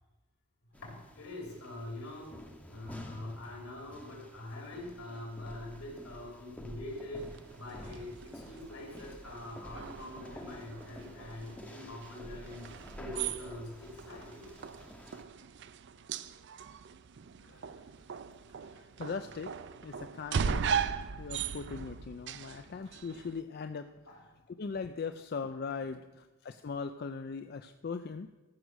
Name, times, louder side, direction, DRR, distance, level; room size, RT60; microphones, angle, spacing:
voice 1, 0.7-7.3 7.5-14.5 17.6-17.8 21.1-21.2 24.1-24.2, left 1 dB, 75° left, -1 dB, 3.7 m, -44 dB
sound 1, 0.7-15.2, equal, 5° left, 0.7 m, -50 dB
sound 2, 7.2-23.4, right 6 dB, 50° right, 0.4 m, -39 dB
voice 2, 17.4-17.8 18.5-19.5 19.8-20.9 21.2-23.9 24.5-28.3, left 5 dB, 45° left, 8 dB, 0.4 m, -40 dB
14.5 x 6.1 x 6.2 m, 1.1 s
head